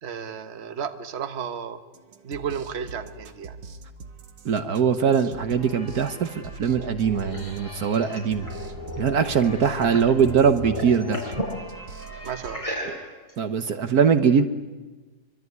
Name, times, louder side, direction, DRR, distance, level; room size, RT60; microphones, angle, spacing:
voice 1, 0.0-1.8 2.2-3.6 12.2-12.7, right 7 dB, 40° right, 9 dB, 1.4 m, -33 dB
sound 1, 1.9-12.6, right 5 dB, 85° right, 2.1 m, -44 dB
voice 2, 4.4-8.5 9.0-11.2 12.8-12.9 13.4-14.5, right 7 dB, 60° right, 9 dB, 1.5 m, -22 dB
sound 2, 5.5-13.3, left 1 dB, 10° right, 2.3 m, -40 dB
sound 3, 6.8-10.2 10.5-11.6 12.4-13.3, equal, 15° left, 5.9 m, -35 dB
25.0 x 24.5 x 9.5 m, 1.3 s
omnidirectional pair, 1.9 m